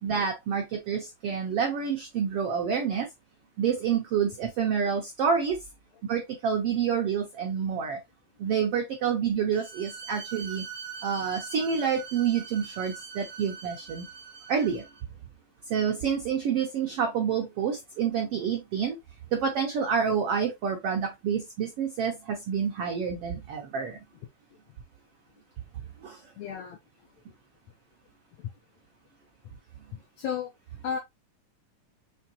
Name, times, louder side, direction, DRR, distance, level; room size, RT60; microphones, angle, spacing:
voice 1, 0.0-3.1 3.6-5.6 6.0-8.0 8.4-10.7 11.0-14.1 14.5-14.8 15.7-19.0 19.3-24.0 26.0-26.2, right 7 dB, 80° right, 1.3 m, -28 dB
Bowed string instrument, 9.5-15.0, right 6 dB, 60° right, 1.0 m, -42 dB
voice 2, 26.4-26.8 28.4-28.5 30.2-30.5 30.8-31.0, left 7 dB, 80° left, 1.6 m, -32 dB
5.7 x 3.3 x 2.8 m
omnidirectional pair, 3.9 m